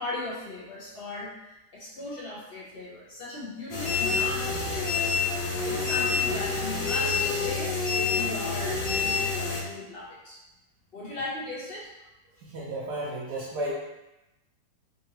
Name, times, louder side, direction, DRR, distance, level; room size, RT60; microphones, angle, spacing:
voice 1, 0.0-1.3 1.7-10.4 10.9-11.9, left 2 dB, 60° left, -7 dB, 0.6 m, -38 dB
sound 1, 3.7-9.6, left 4 dB, 80° left, 1.5 m, -27 dB
voice 2, 12.4-13.7, right 1 dB, 70° right, -6 dB, 1.1 m, -33 dB
3.7 x 2.6 x 2.8 m, 0.95 s
omnidirectional pair, 1.9 m